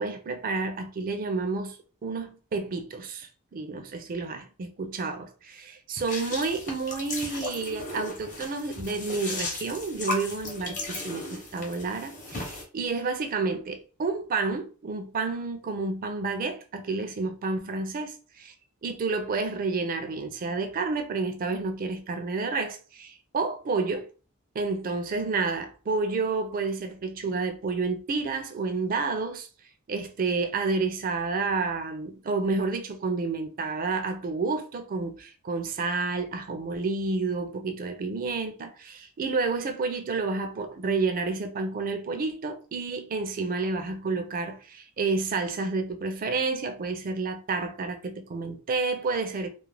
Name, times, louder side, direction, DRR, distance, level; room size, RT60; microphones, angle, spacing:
voice 1, 0.0-18.5 18.8-24.1 24.5-29.5 29.9-49.5, right 4 dB, 40° right, 0.4 m, -30 dB
sound 1, 6.0-12.6, left 2 dB, 35° left, 0.7 m, -36 dB
2.4 x 2.0 x 3.1 m
head